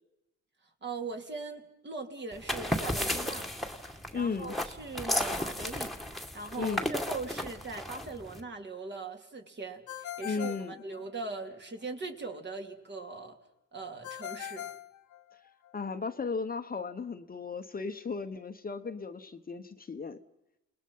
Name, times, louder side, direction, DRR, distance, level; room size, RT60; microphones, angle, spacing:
voice 1, 0.8-3.5 3.8-13.4 13.7-14.7, right 3 dB, 35° right, 4 dB, 3.1 m, -40 dB
sound 1, 2.3-8.4, left 1 dB, ahead, 2.1 m, -34 dB
voice 2, 4.1-4.5 6.6-6.9 10.2-10.7 15.7-20.2, left 5 dB, 30° left, 8 dB, 1.1 m, -35 dB
Ringtone, 9.9-11.5 14.0-15.7, left 12 dB, 75° left, 1.4 m, -42 dB
29.0 x 20.5 x 5.6 m, 0.89 s
cardioid pair, 90°, 30 cm